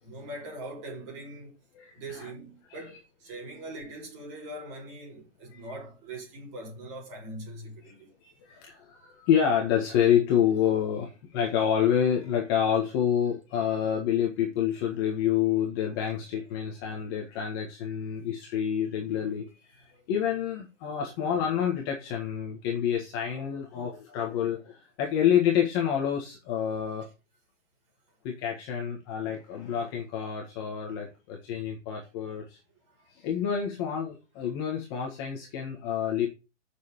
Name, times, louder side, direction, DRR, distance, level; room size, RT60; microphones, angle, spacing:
voice 1, 0.0-1.5 1.9-8.1, right 1 dB, 25° right, 6.4 m, -41 dB
voice 2, 1.7-2.3 2.7-2.8 5.5-5.8 7.9-8.0 8.2-27.1 28.2-32.6 33.1-36.3, left 9 dB, 20° left, 1.6 m, -28 dB
8.4 x 6.8 x 8.0 m
hypercardioid pair, 175°, 36 cm